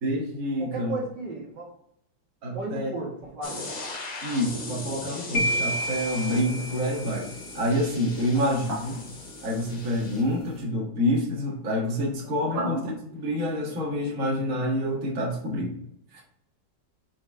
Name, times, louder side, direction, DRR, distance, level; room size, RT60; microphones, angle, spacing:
voice 1, 0.0-1.0 2.4-2.9 4.2-7.3 7.5-8.9 9.4-15.7 16.1-16.2, equal, 45° right, -3 dB, 1.9 m, -27 dB
voice 2, 0.6-1.7 2.5-3.6 8.3-8.4 12.2-12.6, right 3 dB, 70° right, -3 dB, 2.6 m, -35 dB
sound 1, 3.4-10.2, left 2 dB, 85° left, 2.6 m, -38 dB
sound 2, 5.3-7.5, equal, 25° left, 1.5 m, -29 dB
6.2 x 4.8 x 3.5 m, 0.73 s
omnidirectional pair, 2.0 m